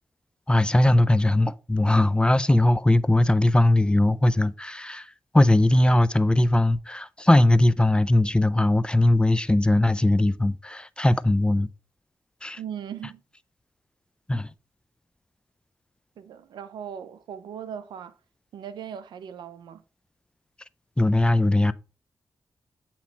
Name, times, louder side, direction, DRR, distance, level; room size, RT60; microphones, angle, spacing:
voice 1, 0.5-5.1 5.3-11.7 12.4-12.6 14.3-14.5 21.0-21.7, left 1 dB, 10° left, 0.4 m, -20 dB
voice 2, 12.6-13.2 16.2-18.1 18.5-19.8, right 8 dB, 90° right, 0.4 m, -38 dB
8.2 x 3.0 x 4.3 m
cardioid pair, 50°, 8 cm